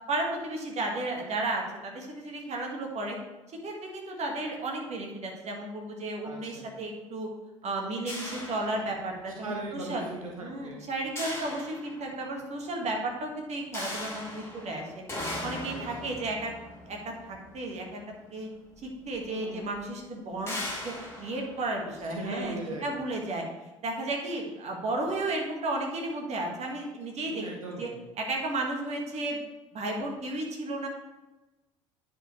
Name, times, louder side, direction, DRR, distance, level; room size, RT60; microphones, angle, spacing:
voice 1, 0.1-3.2 3.6-7.3 7.6-10.1 10.4-15.0 15.4-16.5 16.9-18.0 18.3-18.5 18.8-20.6 20.8-23.4 23.8-27.4 27.8-27.9 28.2-29.4 29.7-30.9, right 2 dB, 40° right, 0 dB, 1.9 m, -33 dB
voice 2, 6.2-6.7 9.4-10.8 15.7-16.1 19.3-19.7 22.1-22.9 27.2-28.1, right 2 dB, 90° right, -1 dB, 0.8 m, -39 dB
sound 1, 8.1-9.4 11.2-12.4 13.7-18.2 19.1-19.2 19.6-19.8 20.5-22.4, left 1 dB, 15° left, 2.5 m, -39 dB
9.9 x 4.9 x 3.3 m, 1.1 s
figure-of-eight pair, 60°, 17 cm